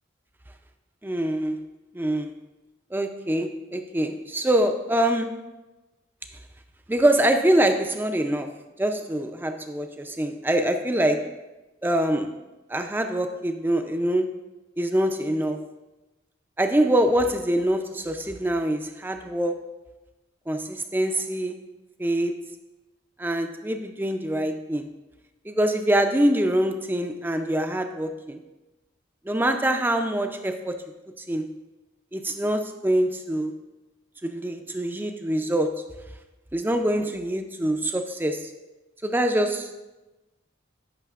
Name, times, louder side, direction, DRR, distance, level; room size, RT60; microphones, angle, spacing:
voice 1, 1.0-1.6 1.9-2.3 2.9-5.4 6.9-11.3 11.8-12.4 12.7-14.4 14.8-15.6 16.6-19.6 20.5-21.6 22.0-22.5 23.2-24.9 25.4-28.4 29.2-30.9 31.3-31.6 32.1-33.5 34.2-35.9 36.5-38.5 39.0-39.8, right 1 dB, 10° right, 6 dB, 0.4 m, -24 dB
14.5 x 6.1 x 2.4 m, 1.1 s
head